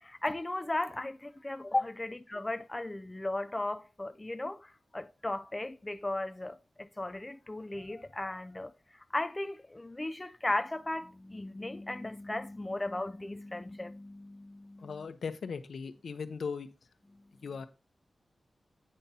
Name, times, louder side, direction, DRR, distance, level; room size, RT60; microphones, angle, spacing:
voice 1, 0.0-8.7 9.1-14.9, left 2 dB, 15° left, 0.4 m, -36 dB
voice 2, 14.8-16.7 17.4-17.7, left 5 dB, 80° left, 1.0 m, -38 dB
8.8 x 5.5 x 4.3 m
wide cardioid pair, 160°, 0 cm